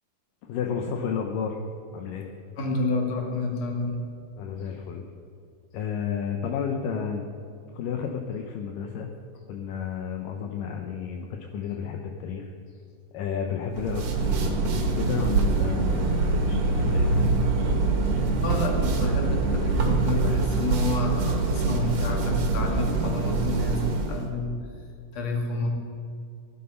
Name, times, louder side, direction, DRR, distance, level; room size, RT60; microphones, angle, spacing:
voice 1, 0.4-1.6 1.9-2.3 4.4-5.0 5.7-7.3 7.7-9.1 9.5-12.5 13.1-17.3, left 7 dB, 75° left, 3 dB, 2.5 m, -32 dB
voice 2, 2.6-4.0 18.4-24.5 25.1-25.7, left 2 dB, 50° left, 1 dB, 3.2 m, -29 dB
sound 1, 13.7-24.3, right 3 dB, 65° right, 3.1 m, -24 dB
17.0 x 11.5 x 5.6 m, 2.4 s
omnidirectional pair, 4.0 m